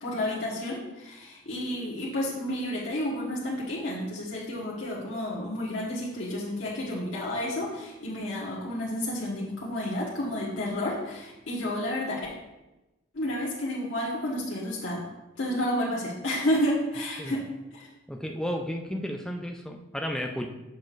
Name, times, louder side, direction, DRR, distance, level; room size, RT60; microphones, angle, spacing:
voice 1, 0.0-12.3 13.1-15.0 15.4-17.4 17.7-17.9, left 1 dB, 80° left, -7 dB, 1.4 m, -31 dB
voice 2, 18.1-20.5, equal, 5° left, 3 dB, 0.4 m, -33 dB
7.3 x 6.1 x 2.5 m, 1.0 s
head